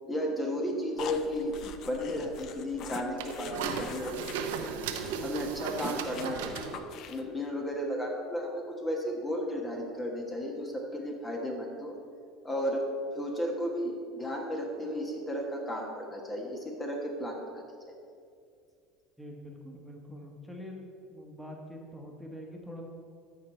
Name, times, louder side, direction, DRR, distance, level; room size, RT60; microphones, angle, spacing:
voice 1, 0.1-1.6 1.9-4.7 5.2-6.7 7.1-11.9 12.4-12.9 13.1-17.6, equal, 20° left, 0 dB, 1.4 m, -34 dB
sound 1, 1.0-4.3 4.6-4.8 5.0-5.2 5.4-7.4, left 8 dB, 55° left, 0.6 m, -43 dB
sound 2, 1.0-6.8, right 6 dB, 80° right, 0.8 m, -37 dB
voice 2, 19.2-20.8 21.1-22.8, equal, ahead, 0 dB, 1.5 m, -44 dB
13.0 x 4.8 x 4.4 m, 2.4 s
hypercardioid pair, 80°, 0 cm